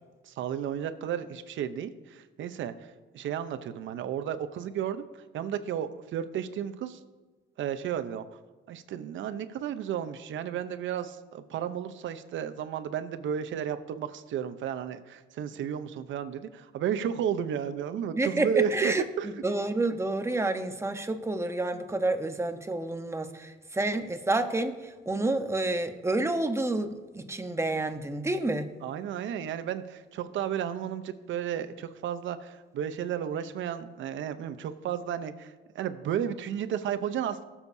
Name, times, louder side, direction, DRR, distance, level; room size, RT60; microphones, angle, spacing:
voice 1, 0.2-2.9 3.1-5.0 5.3-7.0 7.6-8.2 8.7-19.3 28.8-37.4, right 9 dB, 75° right, 10 dB, 0.7 m, -33 dB
voice 2, 18.1-28.7, right 2 dB, 15° right, 6 dB, 1.0 m, -29 dB
19.0 x 7.2 x 2.7 m, 1.3 s
cardioid pair, 90°, 20 cm